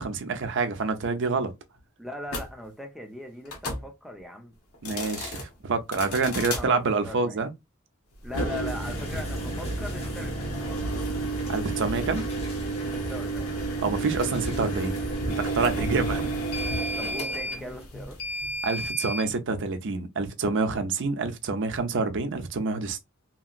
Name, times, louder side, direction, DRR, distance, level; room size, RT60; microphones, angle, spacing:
voice 1, 0.0-1.5 4.8-7.5 11.5-12.2 13.8-15.0 15.4-16.3 18.6-23.1, right 4 dB, 60° right, 0.5 m, -27 dB
voice 2, 2.0-4.5 6.2-6.8 7.0-7.5 8.2-10.9 12.9-13.6 15.7-15.8 17.0-18.2, left 1 dB, ahead, 0.6 m, -40 dB
sound 1, 2.3-2.4 3.5-3.8 4.7-5.4 5.9-6.6 8.2-19.3, right 1 dB, 90° left, 1.0 m, -31 dB
sound 2, 8.7-17.9, left 1 dB, 30° left, 0.9 m, -45 dB
2.9 x 2.8 x 2.4 m
head